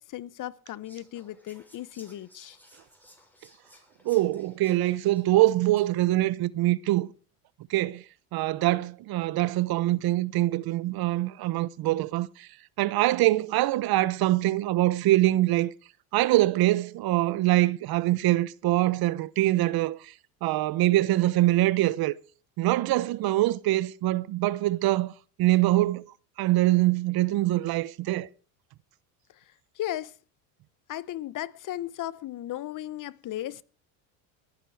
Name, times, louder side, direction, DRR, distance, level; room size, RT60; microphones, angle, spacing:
voice 1, 0.0-2.6 29.8-30.1 30.9-33.6, left 13 dB, 45° left, 0.8 m, -36 dB
Whispering, 0.8-6.1, equal, 5° left, 5.9 m, -57 dB
voice 2, 4.0-7.1 7.7-8.0 8.3-12.5 12.8-15.7 16.1-20.1 20.4-22.1 22.6-25.1 25.4-26.0 26.4-28.3, right 16 dB, 50° right, 0.8 m, -24 dB
21.0 x 10.0 x 4.7 m
supercardioid pair, 95°, 46 cm